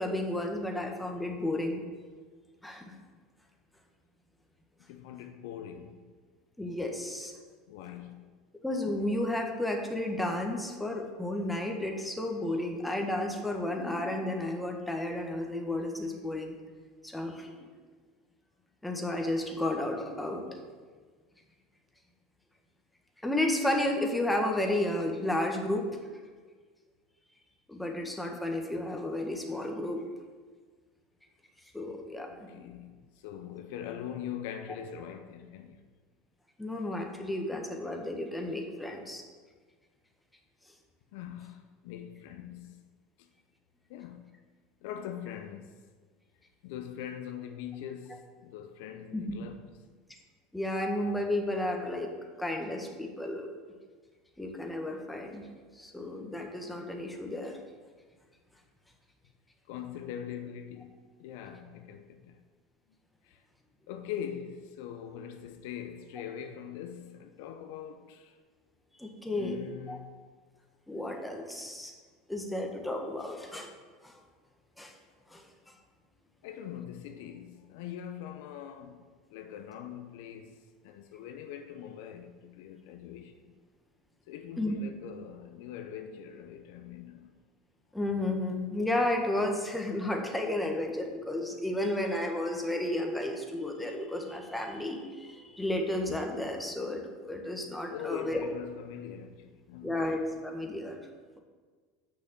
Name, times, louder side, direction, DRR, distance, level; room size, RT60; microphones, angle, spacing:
voice 1, 0.0-1.8 2.6-2.8 6.6-7.3 8.6-16.6 17.0-17.7 18.8-20.4 23.2-25.9 27.7-30.0 31.7-32.5 36.6-39.2 49.1-49.2 50.5-52.1 52.4-53.5 54.4-55.5 55.8-57.6 69.0-69.6 69.9-70.0 70.9-71.9 72.3-73.7 74.0-74.2 74.8-74.9 75.3-75.4 84.6-84.7 87.9-98.4 99.8-101.0, left 1 dB, 5° left, 1.6 m, -32 dB
voice 2, 4.8-6.1 7.7-8.3 32.3-35.8 41.1-42.8 43.2-43.3 43.9-44.4 44.8-45.8 46.6-49.7 59.7-62.4 63.2-63.4 63.9-68.4 69.3-70.2 76.4-83.6 84.3-87.3 97.9-100.0, left 9 dB, 70° left, 0.6 m, -42 dB
6.2 x 6.1 x 7.2 m
hypercardioid pair, 85°, 0 cm